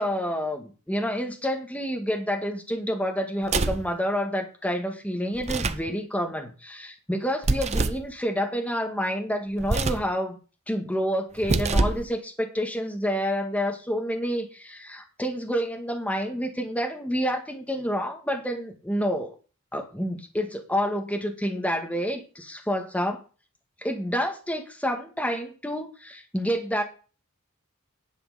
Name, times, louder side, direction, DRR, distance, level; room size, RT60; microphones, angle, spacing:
voice 1, 0.0-10.4 10.7-19.3 19.7-23.2 23.8-26.8, equal, 5° left, 3 dB, 1.8 m, -28 dB
sound 1, 3.4-3.9 5.4-5.9 7.4-8.1 9.6-10.1 11.4-12.1, right 3 dB, 30° right, 0.6 m, -25 dB
11.0 x 7.7 x 5.7 m, 0.35 s
head